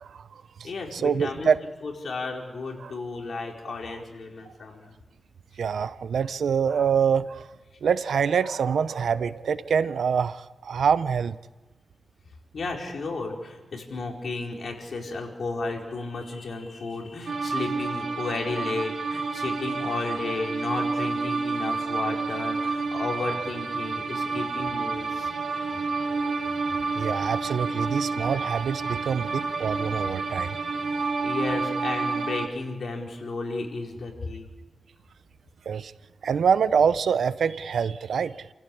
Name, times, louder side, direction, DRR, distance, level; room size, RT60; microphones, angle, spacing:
voice 1, 0.0-1.6 2.8-2.9 5.6-7.5 7.8-11.4 26.9-30.6 35.7-35.9 36.2-38.5, right 7 dB, 85° right, 14 dB, 0.8 m, -25 dB
voice 2, 0.6-1.5 1.8-4.9 12.5-25.3 30.9-34.5, left 3 dB, 65° left, 0 dB, 4.7 m, -33 dB
sound 1, 17.1-31.1, left 1 dB, 30° left, 6.4 m, -50 dB
sound 2, 17.3-32.5, right 4 dB, 70° right, 3.6 m, -29 dB
29.0 x 16.0 x 8.6 m, 1.2 s
cardioid pair, 85°, 0 cm